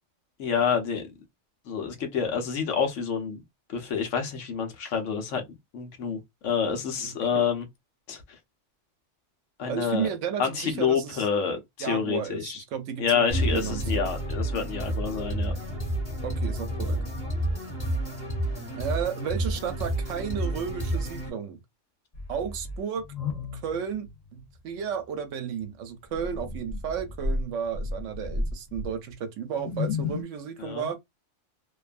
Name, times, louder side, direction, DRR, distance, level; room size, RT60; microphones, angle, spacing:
voice 1, 0.4-1.0 1.7-3.4 3.7-5.4 5.7-6.2 6.4-7.6 8.1-8.2 9.6-10.1 10.4-12.6 13.0-15.5 30.6-30.9, left 6 dB, 85° left, 1.1 m, -28 dB
voice 2, 7.0-7.4 9.7-11.3 11.8-14.1 16.2-17.0 18.7-21.6 22.3-23.0 23.5-31.0, right 7 dB, 85° right, 0.9 m, -33 dB
sound 1, 13.3-21.3, right 1 dB, 30° left, 1.2 m, -30 dB
sound 2, 22.1-24.6 24.9-25.0 26.1-29.1 29.5-30.2, left 3 dB, 45° left, 0.5 m, -33 dB
2.6 x 2.3 x 2.4 m
omnidirectional pair, 1.2 m